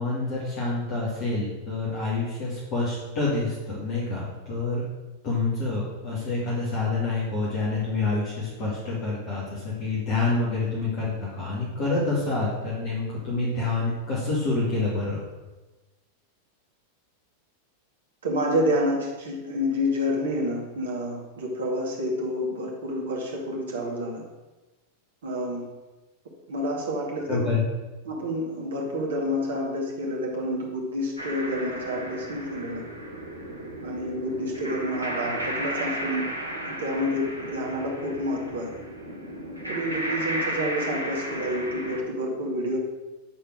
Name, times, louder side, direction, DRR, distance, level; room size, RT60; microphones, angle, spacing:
voice 1, 0.0-4.8 5.2-15.2 27.3-27.6, left 3 dB, 40° left, -7 dB, 2.5 m, -27 dB
voice 2, 18.2-24.2 25.2-25.6 26.5-27.4 28.0-32.8 33.8-36.3 36.6-38.7 39.7-42.8, equal, 65° right, -2 dB, 2.3 m, -28 dB
sound 1, 31.2-42.0, right 1 dB, 85° right, 1.2 m, -34 dB
9.7 x 4.4 x 6.3 m, 1.2 s
figure-of-eight pair, 90°, 0 cm